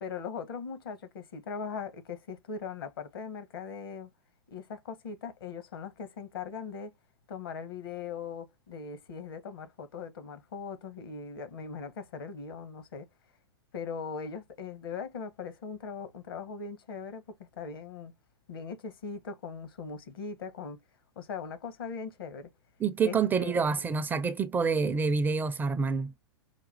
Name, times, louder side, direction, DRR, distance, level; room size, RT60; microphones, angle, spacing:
voice 1, 0.0-4.1 4.5-6.9 7.3-13.1 13.7-18.1 18.5-20.8 21.2-22.5 23.0-24.0, left 5 dB, 65° left, 1.1 m, -40 dB
voice 2, 22.8-26.1, right 5 dB, 15° right, 0.4 m, -27 dB
5.0 x 2.3 x 4.1 m
figure-of-eight pair, 105°, 13 cm